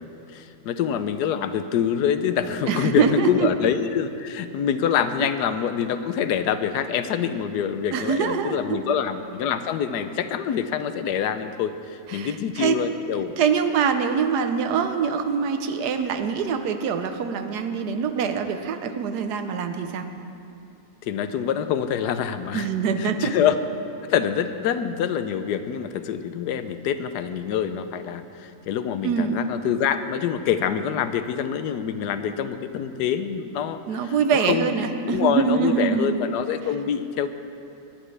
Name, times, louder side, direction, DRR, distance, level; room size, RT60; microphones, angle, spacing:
voice 1, 0.0-13.3 21.0-22.7 23.0-23.6 24.1-34.1 34.4-34.7 35.1-37.3, left 8 dB, 90° left, 10 dB, 1.2 m, -26 dB
voice 2, 2.7-3.5 7.9-8.8 12.1-12.9 13.4-20.1 22.5-23.3 29.0-29.4 33.9-36.2, right 6 dB, 85° right, 8 dB, 1.4 m, -24 dB
19.0 x 11.5 x 3.3 m, 2.7 s
omnidirectional pair, 1.7 m